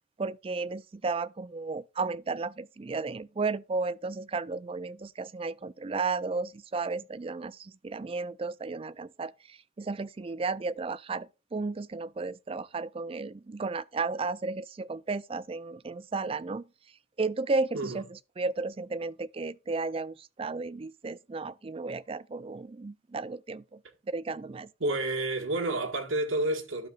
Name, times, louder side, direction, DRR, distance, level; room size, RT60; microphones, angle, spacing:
voice 1, 0.2-16.7 17.2-23.8 24.1-24.7, right 3 dB, 30° right, 0.4 m, -34 dB
voice 2, 24.8-26.9, right 2 dB, 85° right, 1.6 m, -29 dB
12.0 x 6.7 x 2.4 m
head